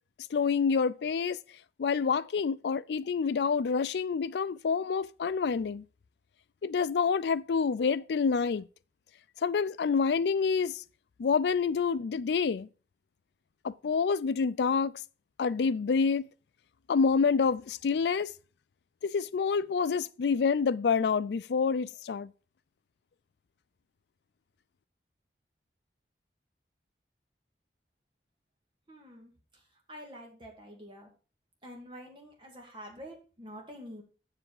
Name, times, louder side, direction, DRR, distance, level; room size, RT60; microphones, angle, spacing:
voice 1, 0.3-1.4 1.8-5.8 6.6-8.6 9.4-10.8 11.2-12.7 13.6-15.0 15.4-16.2 16.9-18.3 19.0-22.3, left 5 dB, 75° left, 0.4 m, -27 dB
voice 2, 28.9-29.6 29.9-31.1 31.6-34.0, equal, 30° right, 2.1 m, -47 dB
7.5 x 6.9 x 4.8 m
head